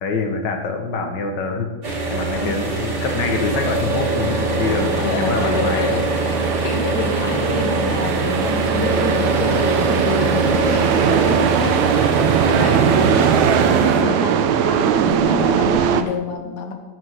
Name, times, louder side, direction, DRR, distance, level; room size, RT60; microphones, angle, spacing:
voice 1, 0.0-1.7 2.1-6.0 10.5-10.8, left 4 dB, 55° left, 4 dB, 1.3 m, -25 dB
sound 1, 1.8-14.0, right 2 dB, 25° right, 2.7 m, -23 dB
sound 2, 1.9-16.0, right 8 dB, 75° right, 2.0 m, -21 dB
voice 2, 4.2-4.7 5.0-12.2 12.4-13.1 13.6-16.7, left 3 dB, 75° left, 4 dB, 0.9 m, -28 dB
12.5 x 8.0 x 6.6 m, 1.2 s
omnidirectional pair, 3.6 m